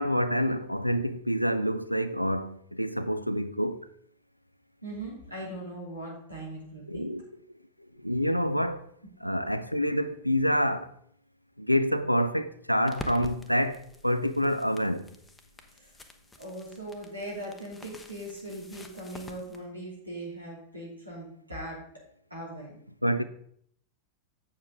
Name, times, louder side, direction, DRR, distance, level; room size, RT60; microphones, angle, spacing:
voice 1, 0.0-3.9 6.9-7.2 8.0-8.9 9.2-10.9 11.6-15.1 23.0-23.2, equal, 90° left, 0.4 m, -27 dB
voice 2, 4.8-7.1 9.2-9.3 15.7-16.0 16.4-22.0 22.3-22.8, right 1 dB, 85° right, 2.6 m, -40 dB
sound 1, 12.9-19.6, left 1 dB, 10° left, 0.9 m, -47 dB
7.6 x 7.0 x 3.6 m
figure-of-eight pair, 90°, 0 cm